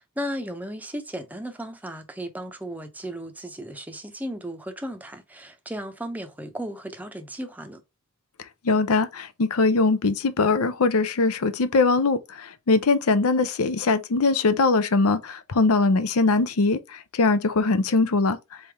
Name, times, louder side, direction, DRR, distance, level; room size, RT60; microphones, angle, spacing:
voice 1, 0.0-7.8, equal, 5° right, 0.6 m, -35 dB
voice 2, 8.6-18.4, left 3 dB, 85° left, 0.6 m, -21 dB
4.2 x 3.4 x 3.4 m
head